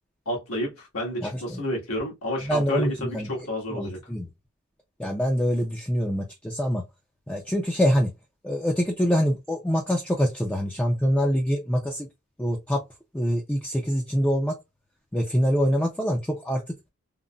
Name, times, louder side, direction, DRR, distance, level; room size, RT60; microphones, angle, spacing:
voice 1, 0.2-4.0, equal, 80° left, 1.5 m, -30 dB
voice 2, 1.2-1.6 2.4-3.3 3.7-4.3 5.0-6.8 7.3-8.1 8.4-12.1 12.4-12.8 13.1-14.6 15.1-16.6, equal, 5° left, 0.4 m, -25 dB
3.7 x 2.0 x 2.3 m
head